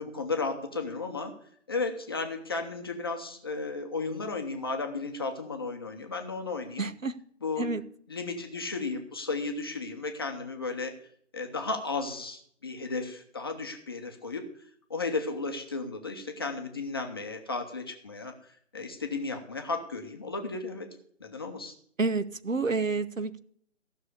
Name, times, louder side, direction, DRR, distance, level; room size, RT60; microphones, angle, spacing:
voice 1, 0.0-1.3 1.7-6.9 7.4-7.7 8.1-10.9 11.3-14.4 14.9-18.3 18.7-20.9 21.2-21.7, left 3 dB, 20° left, 4 dB, 0.8 m, -34 dB
voice 2, 6.8-7.2 7.6-7.8 22.0-23.4, right 3 dB, 85° right, 14 dB, 1.0 m, -29 dB
14.5 x 6.4 x 6.8 m, 0.62 s
figure-of-eight pair, 150°, 38 cm